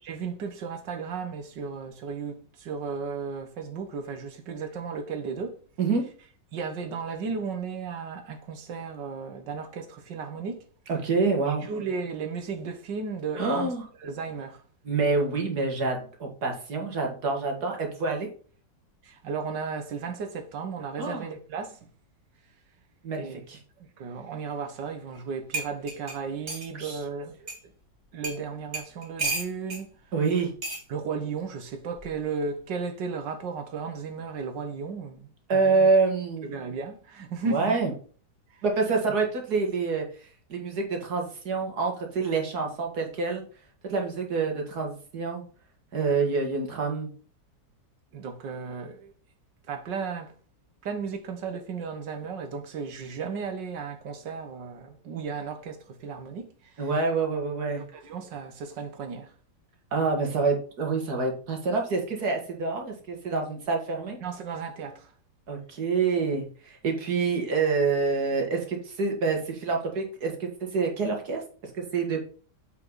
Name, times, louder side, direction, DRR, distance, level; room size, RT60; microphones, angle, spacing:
voice 1, 0.0-5.6 6.5-10.7 11.5-13.7 14.0-14.6 19.0-21.9 23.2-23.4 23.8-27.5 28.1-29.9 30.9-35.9 36.4-37.8 48.1-49.1 49.7-50.3 50.8-56.9 57.7-59.3 64.2-65.1, right 5 dB, 80° right, 1.9 m, -35 dB
voice 2, 10.9-11.7 13.4-13.8 14.8-18.3 21.0-21.3 23.0-23.6 26.8-27.0 30.1-30.5 35.5-36.5 37.4-37.9 38.6-40.1 40.5-43.4 43.8-45.4 45.9-47.1 56.8-57.8 59.9-64.2 65.5-71.4 71.7-72.2, right 4 dB, 60° right, 2.5 m, -27 dB
sound 1, 25.2-25.3 25.5-26.7 27.5-27.6 28.2-28.4 28.7-29.8 30.6-30.8 32.0-32.2, right 3 dB, 35° right, 2.6 m, -33 dB
7.6 x 6.0 x 4.0 m
omnidirectional pair, 1.9 m